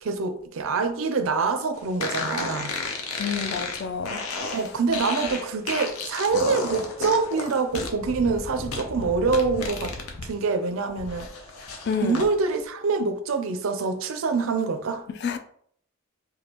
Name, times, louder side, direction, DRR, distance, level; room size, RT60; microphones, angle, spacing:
voice 1, 0.0-2.7 4.5-9.9 10.2-11.3 12.0-15.0, right 4 dB, 70° right, 0.5 m, -25 dB
sound 1, 2.0-10.3 10.7-12.3, left 3 dB, 90° left, 0.7 m, -33 dB
voice 2, 3.2-4.2 4.5-4.6 11.8-12.2 15.2-15.4, left 6 dB, 50° left, 0.4 m, -29 dB
5.1 x 2.3 x 2.9 m
head